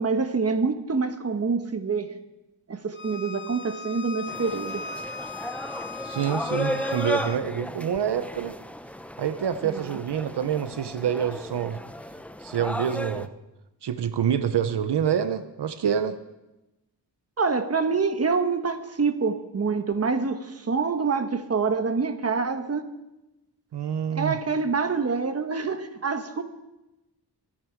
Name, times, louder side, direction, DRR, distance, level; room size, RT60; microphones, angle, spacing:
voice 1, 0.0-2.1 2.7-4.9 9.6-10.0 17.4-22.9 24.1-26.4, right 4 dB, 35° right, 8 dB, 1.2 m, -26 dB
Bowed string instrument, 2.9-7.4, left 4 dB, 30° left, 0.8 m, -38 dB
sound 1, 4.3-13.3, left 1 dB, 5° left, 0.6 m, -34 dB
voice 2, 6.0-8.6 9.2-11.8 12.4-13.3 13.8-16.2 23.7-24.4, right 8 dB, 80° right, 11 dB, 0.8 m, -27 dB
24.0 x 10.0 x 4.6 m, 0.98 s
wide cardioid pair, 105°, 40 cm